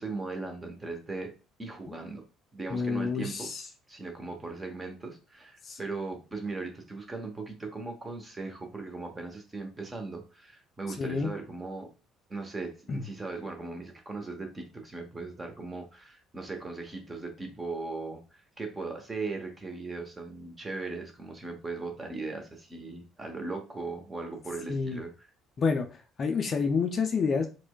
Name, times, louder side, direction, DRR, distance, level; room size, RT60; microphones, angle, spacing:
voice 1, 0.0-1.3 1.6-2.2 2.5-3.5 3.9-11.9 12.3-25.1, right 3 dB, 20° right, 4 dB, 0.8 m, -38 dB
voice 2, 2.7-3.6 5.6-5.8 11.0-11.3 12.9-13.0 24.7-25.0 25.6-25.9 26.2-27.5, left 5 dB, 40° left, 5 dB, 0.4 m, -28 dB
4.3 x 2.2 x 2.2 m, 0.32 s
figure-of-eight pair, 55°, 0 cm